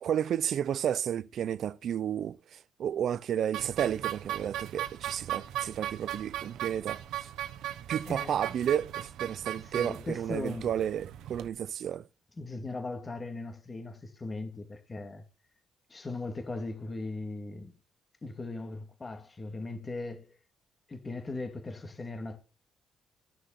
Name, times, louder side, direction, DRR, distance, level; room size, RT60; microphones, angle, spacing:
voice 1, 0.0-7.3 7.9-12.1, right 9 dB, 65° right, 0.5 m, -32 dB
sound 1, 3.5-11.5, right 12 dB, 85° right, 1.0 m, -38 dB
voice 2, 8.1-8.4 9.7-10.7 12.4-15.2 15.9-17.7 18.2-20.4 20.9-22.4, left 2 dB, 25° left, 2.5 m, -38 dB
15.0 x 6.5 x 5.8 m
cardioid pair, 90°, 0 cm